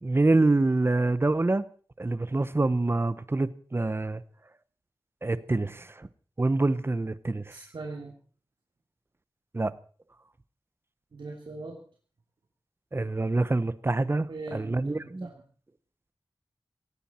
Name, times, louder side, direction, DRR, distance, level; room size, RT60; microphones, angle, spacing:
voice 1, 0.0-1.6 2.0-4.2 5.2-6.1 6.4-7.5 9.5-9.7 12.9-15.3, right 2 dB, 25° right, 0.8 m, -26 dB
voice 2, 7.5-8.1 11.1-11.8 14.3-15.4, right 3 dB, 70° right, 2.9 m, -40 dB
18.0 x 17.0 x 4.3 m
wide cardioid pair, 95°, 9 cm